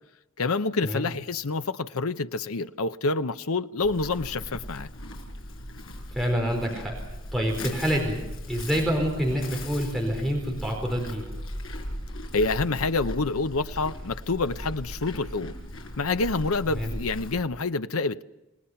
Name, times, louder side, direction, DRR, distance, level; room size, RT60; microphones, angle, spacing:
voice 1, 0.4-4.9 12.3-15.5 16.0-18.2, left 3 dB, 85° left, 0.8 m, -27 dB
Livestock farm animals working animals, 3.8-17.4, left 1 dB, 70° left, 5.7 m, -38 dB
voice 2, 6.1-6.9 7.3-8.2 8.5-11.2 16.7-16.9, equal, ahead, 4.5 m, -27 dB
29.0 x 18.5 x 5.8 m
head